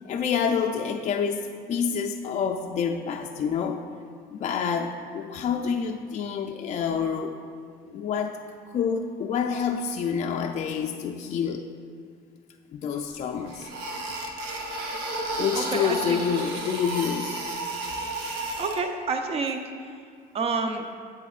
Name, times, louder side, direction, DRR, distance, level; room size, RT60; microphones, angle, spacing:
voice 1, 0.0-3.8 4.3-7.3 7.9-8.4 8.7-11.7 12.7-13.7 15.4-17.4, left 7 dB, 45° left, 3 dB, 0.4 m, -28 dB
sound 1, 13.0-13.1 13.5-18.8, right 2 dB, 85° right, 0.8 m, -32 dB
voice 2, 15.6-16.2 18.6-19.6 20.3-20.8, right 4 dB, 35° right, 5 dB, 0.6 m, -28 dB
8.1 x 7.8 x 2.4 m, 2.3 s
cardioid pair, 110°, 17 cm